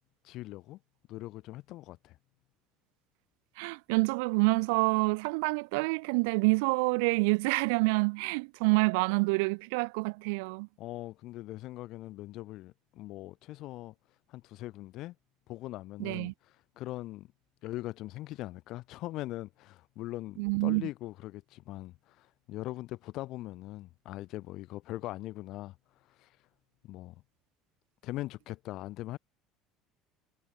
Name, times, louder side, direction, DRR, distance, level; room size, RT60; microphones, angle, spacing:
voice 1, 0.2-0.8 1.1-2.2 10.8-13.9 14.3-15.1 15.5-16.3 16.7-17.3 17.6-25.8 26.1-26.4 26.8-27.2 28.0-29.2, left 17 dB, 65° left, 3.5 m, -41 dB
voice 2, 3.6-10.7 16.0-16.3 20.4-20.9, right 30 dB, 80° right, 1.2 m, -27 dB
supercardioid pair, 95°, 0 cm